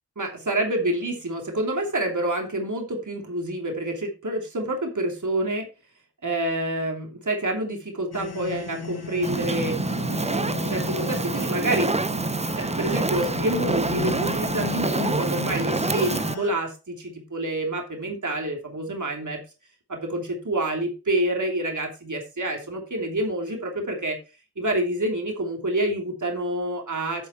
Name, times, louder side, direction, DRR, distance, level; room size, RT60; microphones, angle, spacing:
voice 1, 0.2-5.7 6.2-9.8 10.2-10.4 10.7-12.3 12.5-19.4 19.9-24.2 24.6-27.3, right 1 dB, 50° right, 2 dB, 3.0 m, -28 dB
sound 1, 8.1-16.5, left 5 dB, 75° left, 1.6 m, -35 dB
Fire, 9.2-16.3, right 3 dB, 15° right, 0.6 m, -27 dB
10.5 x 6.0 x 4.4 m, 0.30 s
cardioid pair, 45°, 39 cm